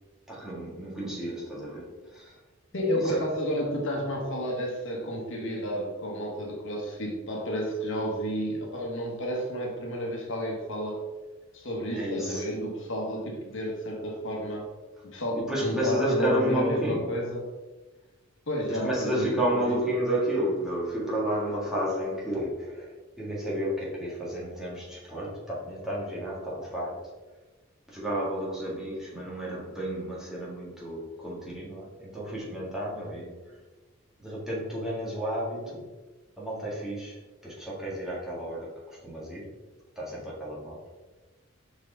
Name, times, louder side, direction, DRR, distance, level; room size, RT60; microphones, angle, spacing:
voice 1, 0.3-2.4 2.9-3.3 11.9-12.5 15.3-17.2 18.7-27.1 27.9-33.6 34.2-35.9 36.4-39.6 40.0-40.8, equal, ahead, -7 dB, 1.7 m, -32 dB
voice 2, 2.7-11.0 11.5-14.7 15.0-17.4 18.5-19.3 19.5-19.7, equal, 65° left, -1 dB, 1.4 m, -31 dB
5.5 x 4.7 x 3.8 m, 1.2 s
head